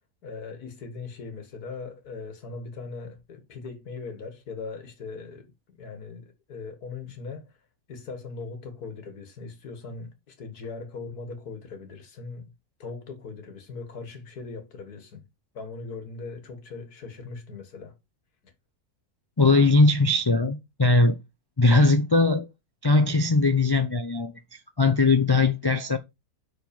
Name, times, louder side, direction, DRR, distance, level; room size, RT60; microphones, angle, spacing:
voice 1, 0.2-5.5 5.8-7.5 7.9-12.5 12.8-15.2 15.5-18.0 18.4-18.5, left 4 dB, 90° left, 2.1 m, -39 dB
voice 2, 19.4-21.2 21.6-22.5 22.8-26.0, left 3 dB, 40° left, 0.3 m, -20 dB
5.9 x 5.1 x 5.1 m
omnidirectional pair, 1.6 m